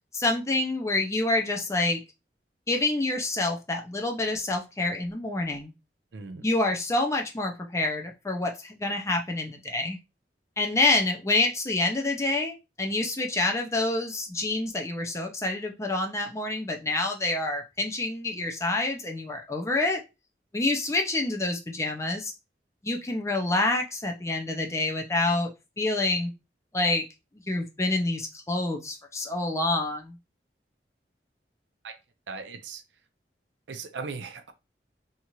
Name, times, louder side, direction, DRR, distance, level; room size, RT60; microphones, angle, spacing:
voice 1, 0.1-2.0 2.7-5.7 6.4-10.0 10.6-20.0 20.5-22.3 22.8-25.5 25.8-26.3 26.7-27.0 27.5-30.2, left 2 dB, 15° left, 0.5 m, -27 dB
voice 2, 6.1-6.4 31.8-32.0 32.3-32.8 33.7-34.5, right 4 dB, 90° right, 0.5 m, -38 dB
2.8 x 2.4 x 2.9 m
head